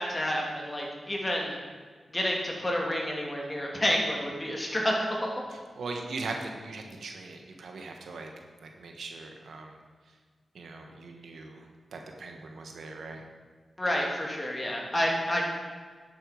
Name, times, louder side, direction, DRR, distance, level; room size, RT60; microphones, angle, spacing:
voice 1, 0.0-1.6 2.1-5.1 13.8-15.4, equal, 25° left, -1 dB, 2.7 m, -29 dB
voice 2, 5.5-8.3 8.6-9.8 10.5-11.6 11.9-13.2, right 3 dB, 85° right, 2 dB, 1.4 m, -40 dB
10.5 x 8.4 x 5.3 m, 1.5 s
cardioid pair, 65°, 0 cm